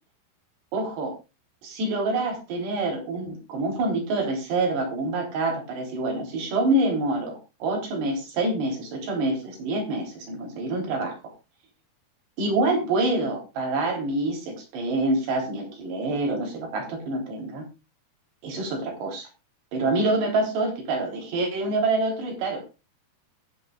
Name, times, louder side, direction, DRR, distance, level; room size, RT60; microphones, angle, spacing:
voice 1, 0.7-1.2 1.6-11.1 12.4-17.7 18.4-19.3 19.7-22.6, right 2 dB, 90° right, 1 dB, 5.6 m, -26 dB
21.0 x 9.5 x 2.4 m, 0.27 s
omnidirectional pair, 4.7 m